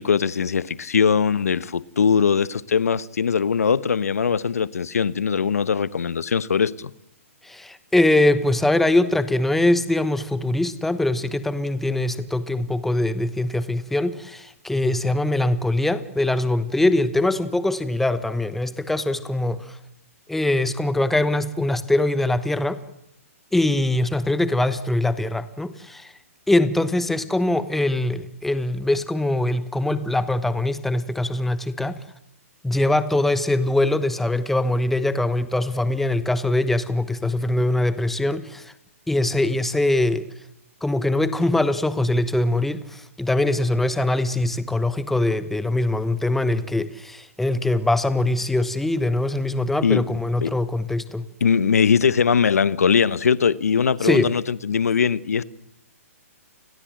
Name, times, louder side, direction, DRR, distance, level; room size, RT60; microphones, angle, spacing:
voice 1, 0.0-6.9 49.8-50.0 50.4-50.5 51.4-55.4, left 6 dB, 90° left, 1.0 m, -21 dB
voice 2, 7.4-19.8 20.3-22.8 23.5-26.1 26.5-32.0 32.6-38.7 39.1-40.3 40.8-51.2 54.0-54.3, left 1 dB, 5° left, 1.0 m, -22 dB
29.0 x 21.0 x 7.7 m
hypercardioid pair, 150°, 8 cm